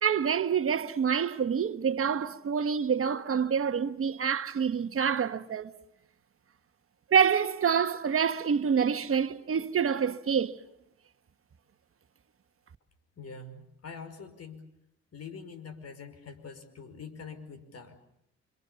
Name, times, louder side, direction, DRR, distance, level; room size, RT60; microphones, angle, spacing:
voice 1, 0.0-5.7 7.1-10.6, right 7 dB, 45° right, 1.3 m, -27 dB
voice 2, 13.2-14.6 15.1-18.0, left 5 dB, 55° left, 5.4 m, -44 dB
28.5 x 25.5 x 7.0 m
cardioid pair, 90°, 30 cm